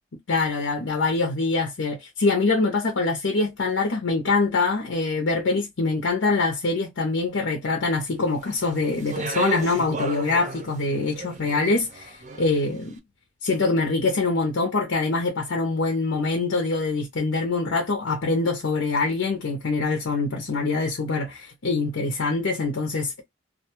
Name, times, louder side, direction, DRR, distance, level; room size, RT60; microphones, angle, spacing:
voice 1, 0.3-13.0 13.4-23.2, left 3 dB, 85° left, 0.6 m, -24 dB
Speech, 8.4-12.7, right 3 dB, 40° right, 0.5 m, -35 dB
2.4 x 2.2 x 2.9 m
head